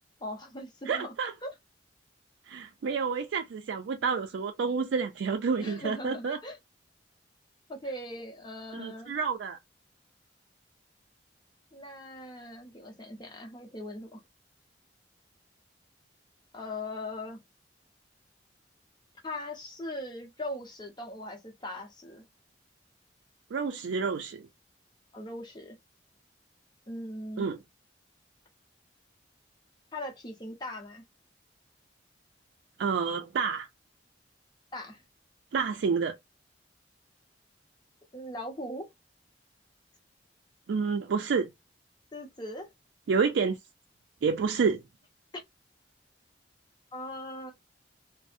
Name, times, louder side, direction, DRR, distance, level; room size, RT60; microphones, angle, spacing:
voice 1, 0.2-1.1 1.4-1.5 5.6-6.6 7.7-9.2 11.7-14.2 16.5-17.4 19.2-22.3 25.1-25.8 26.9-27.5 29.9-31.0 34.7-35.0 38.1-38.9 42.1-42.7 45.3-45.4 46.9-47.5, left 1 dB, 25° left, 0.7 m, -40 dB
voice 2, 0.9-1.3 2.5-6.4 8.7-9.6 23.5-24.5 27.4-27.6 32.8-33.7 35.5-36.2 40.7-41.5 43.1-43.6 44.2-44.8, right 5 dB, 80° right, 0.4 m, -29 dB
2.5 x 2.0 x 2.5 m
head